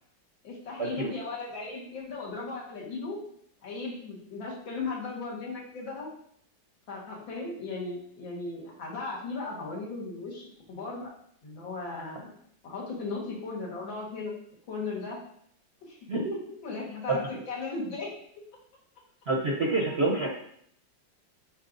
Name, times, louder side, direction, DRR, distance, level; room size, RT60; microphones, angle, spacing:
voice 1, 0.4-3.2 3.6-6.1 6.9-11.1 11.4-12.3 12.6-14.3 14.7-15.2 15.9-16.0 16.3-18.1, left 3 dB, 75° left, -3 dB, 2.3 m, -37 dB
voice 2, 19.3-20.3, right 3 dB, 50° right, -1 dB, 0.8 m, -27 dB
9.2 x 4.6 x 2.6 m, 0.68 s
omnidirectional pair, 2.1 m